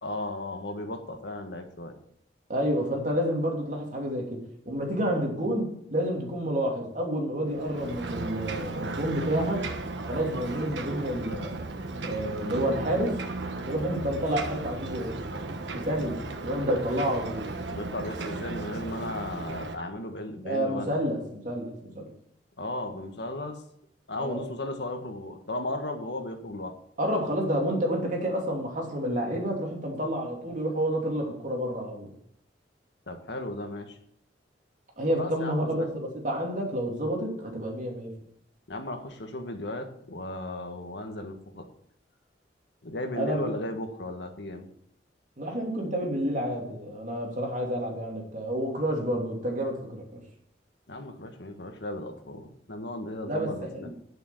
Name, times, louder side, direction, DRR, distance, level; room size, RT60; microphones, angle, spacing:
voice 1, 0.0-1.9 17.7-21.0 22.6-23.6 24.1-26.7 33.1-34.0 35.1-35.9 38.7-41.6 42.8-44.6 50.9-53.9, left 1 dB, 70° left, 5 dB, 1.5 m, -35 dB
voice 2, 2.5-9.7 10.0-11.6 12.0-13.2 13.7-15.2 15.7-17.5 20.4-22.1 24.2-24.4 27.0-32.1 35.0-38.1 43.1-43.5 45.4-50.2 53.3-53.9, equal, 45° right, 0 dB, 2.9 m, -29 dB
Ocean, 7.5-19.8, right 2 dB, 80° right, 1.2 m, -35 dB
9.1 x 6.9 x 8.3 m, 0.71 s
head